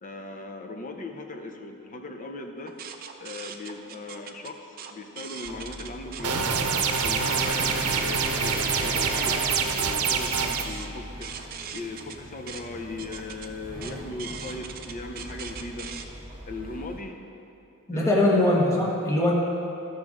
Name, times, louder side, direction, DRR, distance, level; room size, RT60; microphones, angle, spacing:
voice 1, 0.0-2.8 3.2-6.5 7.0-15.9 16.5-17.2 17.9-18.3, left 2 dB, 40° left, 5 dB, 0.7 m, -38 dB
dot matrix printer, 2.7-6.3 6.7-16.0, right 6 dB, 45° right, 0.5 m, -41 dB
sound 1, 5.4-17.0, right 1 dB, 25° right, 1.7 m, -39 dB
sound 2, 6.2-10.6, right 5 dB, 80° right, 0.7 m, -26 dB
voice 2, 17.9-19.3, left 1 dB, 15° left, -4 dB, 1.2 m, -22 dB
14.0 x 6.3 x 3.7 m, 2.7 s
head